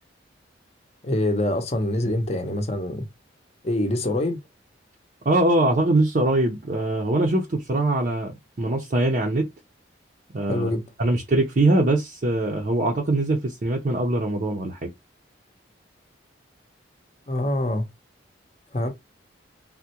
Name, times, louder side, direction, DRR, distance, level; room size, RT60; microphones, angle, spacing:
voice 1, 1.0-3.1 3.6-4.4 10.5-10.8 17.3-17.9 18.7-18.9, left 1 dB, 35° left, 0.6 m, -25 dB
voice 2, 5.3-8.3 8.6-9.4 10.3-10.7 11.0-14.9, right 2 dB, 45° right, 0.5 m, -22 dB
3.4 x 2.1 x 2.8 m
head